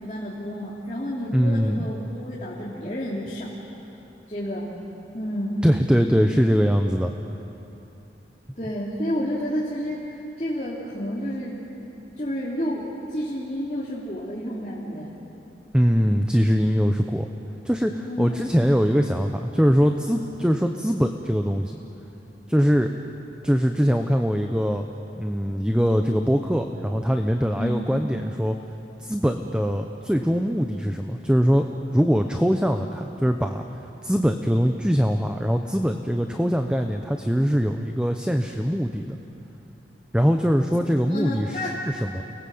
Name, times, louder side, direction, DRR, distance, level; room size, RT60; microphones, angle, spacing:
voice 1, 0.0-3.5 4.3-4.7 5.1-5.7 8.6-10.1 10.4-11.6 12.2-12.8 13.1-15.1 18.1-18.6 27.6-27.8 41.1-41.8, equal, 35° left, -7 dB, 3.1 m, -30 dB
voice 2, 1.3-1.9 5.6-7.1 15.7-17.3 17.6-21.8 22.5-22.9 23.4-24.8 25.2-28.6 29.0-31.7 31.9-33.6 34.0-39.2 40.1-42.2, equal, 5° right, 5 dB, 0.8 m, -22 dB
30.0 x 19.5 x 7.9 m, 3.0 s
head